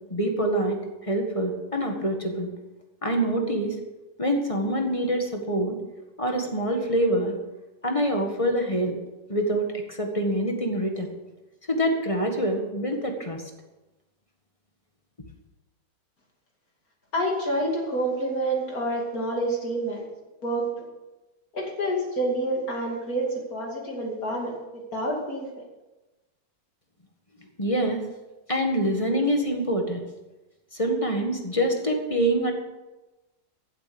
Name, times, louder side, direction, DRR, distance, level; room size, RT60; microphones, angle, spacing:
voice 1, 0.1-2.5 3.0-3.7 4.2-5.8 6.2-7.3 7.8-9.0 9.3-11.1 11.7-13.4 27.6-28.0 28.5-30.0 30.7-32.5, right 1 dB, 20° left, 3 dB, 1.7 m, -25 dB
voice 2, 17.1-20.0 20.4-20.9 21.5-25.5, right 1 dB, 50° left, 0 dB, 3.1 m, -28 dB
15.0 x 8.0 x 6.9 m, 1.1 s
omnidirectional pair, 1.9 m